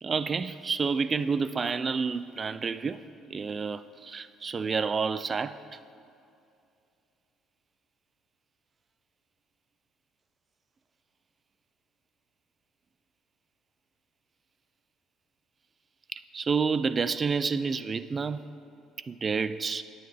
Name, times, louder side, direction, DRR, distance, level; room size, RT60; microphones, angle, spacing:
voice 1, 0.0-3.0 3.3-5.6 16.1-18.4 19.1-19.8, right 5 dB, 30° right, 14 dB, 0.3 m, -29 dB
17.5 x 8.6 x 3.3 m, 2.6 s
cardioid pair, 120°, 0 cm